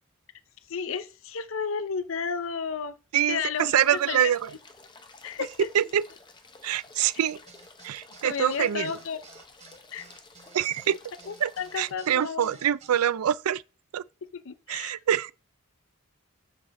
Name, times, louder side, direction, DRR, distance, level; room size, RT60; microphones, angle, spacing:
voice 1, 0.7-2.9 3.3-3.8 4.1-4.3 5.2-5.7 8.2-9.2 9.9-10.1 11.3-12.6 14.2-15.0, left 6 dB, 65° left, 0.6 m, -32 dB
voice 2, 3.1-4.5 5.7-6.0 6.6-7.4 7.8-8.9 10.5-11.0 11.4-11.5 11.8-13.6 13.9-14.0 14.7-15.3, right 10 dB, 90° right, 0.4 m, -25 dB
sound 1, 3.5-11.9, left 3 dB, 20° left, 0.8 m, -51 dB
sound 2, 7.2-13.1, right 5 dB, 30° right, 0.9 m, -53 dB
7.5 x 5.0 x 4.1 m
head